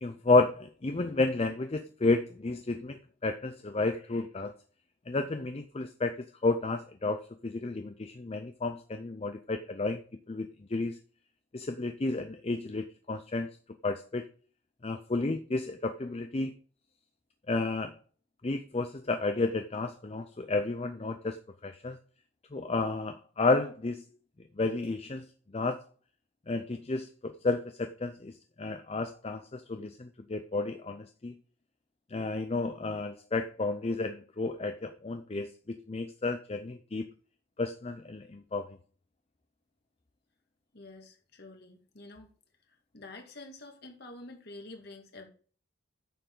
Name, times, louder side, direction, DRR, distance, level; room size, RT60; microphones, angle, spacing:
voice 1, 0.0-4.5 5.1-6.1 6.4-10.0 10.3-11.0 11.5-13.5 13.8-14.3 14.8-16.5 17.5-17.9 18.4-22.0 22.5-24.0 24.6-25.3 25.5-25.8 26.5-31.3 32.1-37.1 37.6-38.7, left 3 dB, 30° left, 8 dB, 0.5 m, -31 dB
voice 2, 40.7-42.3 42.7-45.3, left 2 dB, 50° left, 3 dB, 2.0 m, -48 dB
9.1 x 6.8 x 3.8 m, 0.41 s
head